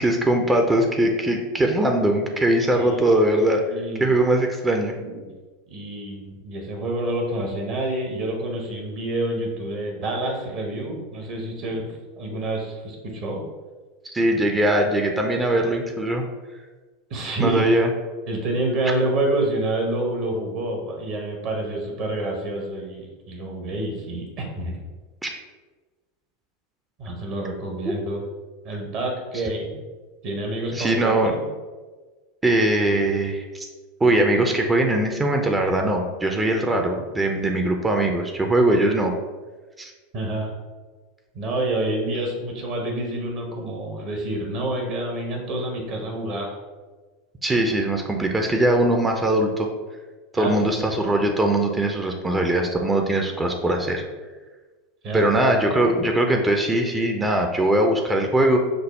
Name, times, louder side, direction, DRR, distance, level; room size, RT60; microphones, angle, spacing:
voice 1, 0.0-3.6 4.0-4.9 14.0-16.2 17.4-17.9 18.9-19.0 25.2-25.3 30.7-31.3 32.4-33.7 34.0-39.1 39.8-39.9 47.4-49.7 50.3-54.0 55.1-58.6, right 1 dB, 15° right, 3 dB, 0.5 m, -21 dB
voice 2, 2.7-3.2 3.7-4.2 5.0-5.3 5.7-13.4 17.1-17.7 18.3-24.8 27.0-28.2 28.6-29.8 30.2-31.4 40.1-40.5 41.3-46.5 50.3-50.8 55.0-55.7, right 1 dB, 45° right, 1 dB, 0.9 m, -28 dB
5.2 x 2.0 x 4.1 m, 1.3 s
figure-of-eight pair, 85°, 0 cm